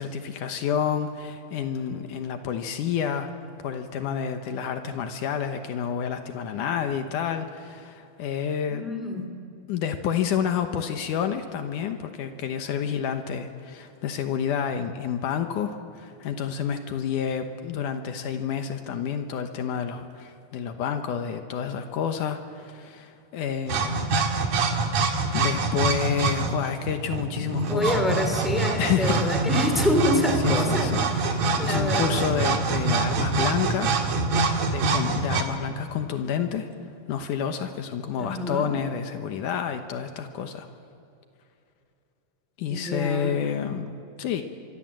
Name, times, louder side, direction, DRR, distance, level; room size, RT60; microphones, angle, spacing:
voice 1, 0.0-3.3 3.6-8.9 9.7-24.0 25.3-28.0 28.8-29.2 30.4-31.0 31.3-34.0 34.7-36.7 37.1-40.7 42.6-44.4, left 8 dB, 75° left, 7 dB, 2.6 m, -29 dB
voice 2, 8.7-9.2 27.7-32.3 38.2-38.7 42.7-43.4, left 1 dB, ahead, 4 dB, 2.8 m, -27 dB
sound 1, 23.7-35.4, right 3 dB, 60° right, 2.9 m, -25 dB
25.5 x 24.0 x 7.6 m, 2.6 s
omnidirectional pair, 3.7 m